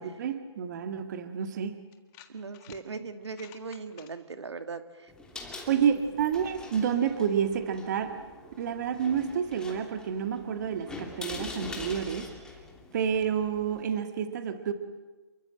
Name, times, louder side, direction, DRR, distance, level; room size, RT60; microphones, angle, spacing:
voice 1, 0.0-1.8 5.7-8.2 8.6-12.3 12.9-14.7, right 8 dB, 40° right, 7 dB, 2.0 m, -29 dB
sound 1, 1.1-1.2 1.9-2.8 3.2-4.1, left 13 dB, 20° left, 1.7 m, -52 dB
voice 2, 2.3-5.1 5.7-5.9, right 4 dB, 70° right, 8 dB, 2.2 m, -39 dB
sound 2, 5.1-13.8, left 2 dB, 5° left, 2.9 m, -44 dB
29.5 x 23.0 x 7.8 m, 1.2 s
figure-of-eight pair, 145°, 15 cm